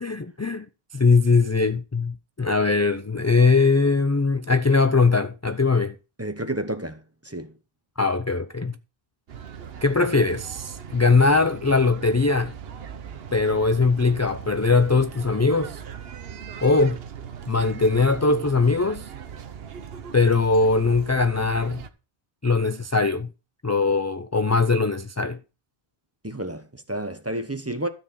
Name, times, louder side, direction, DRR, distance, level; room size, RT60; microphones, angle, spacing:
voice 1, 0.0-0.7 0.9-5.9 8.0-8.7 9.8-12.5 13.3-15.8 16.6-17.0 17.5-19.1 20.1-21.8 22.4-23.3 23.6-25.4, left 4 dB, 25° left, 0.3 m, -21 dB
voice 2, 6.2-7.5 26.2-27.9, right 1 dB, 15° right, 1.1 m, -31 dB
sound 1, 9.3-21.9, right 8 dB, 70° right, 1.1 m, -39 dB
13.0 x 4.5 x 7.3 m
omnidirectional pair, 1.0 m